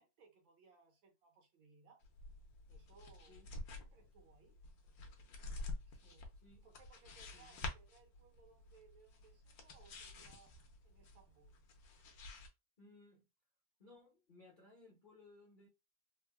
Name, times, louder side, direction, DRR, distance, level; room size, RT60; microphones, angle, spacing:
voice 1, 0.0-2.0 2.7-3.4 3.8-4.6 5.9-6.4 6.6-11.7, right 5 dB, 80° right, 1.7 m, -66 dB
sound 1, 2.0-12.5, left 2 dB, 65° left, 1.0 m, -49 dB
voice 2, 12.8-13.3 13.8-15.7, left 3 dB, 45° left, 0.6 m, -62 dB
3.7 x 2.1 x 2.2 m
omnidirectional pair, 2.1 m